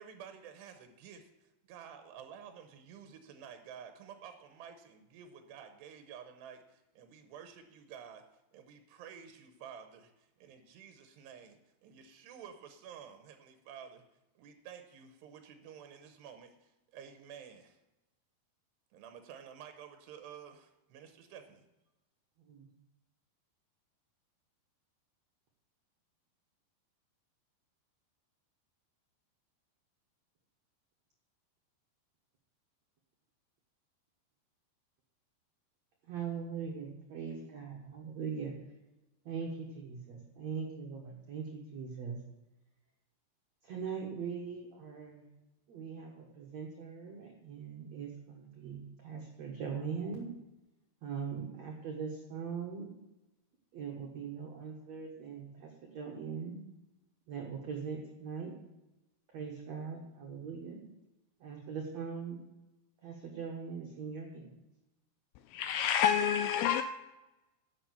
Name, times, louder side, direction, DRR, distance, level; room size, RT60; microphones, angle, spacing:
voice 1, 0.0-8.2 8.5-14.0 14.4-17.8 18.9-21.6, right 8 dB, 85° right, 3.1 m, -51 dB
voice 2, 22.4-22.7 36.1-38.6 39.3-42.2 43.6-45.3 45.7-50.3 51.0-52.9 53.7-56.6 57.3-58.5 59.3-60.8 61.4-62.4 63.0-64.5, right 6 dB, 60° right, 1.9 m, -41 dB
voice 3, 65.5-66.8, left 9 dB, 85° left, 2.1 m, -28 dB
11.5 x 6.9 x 8.3 m
omnidirectional pair, 4.8 m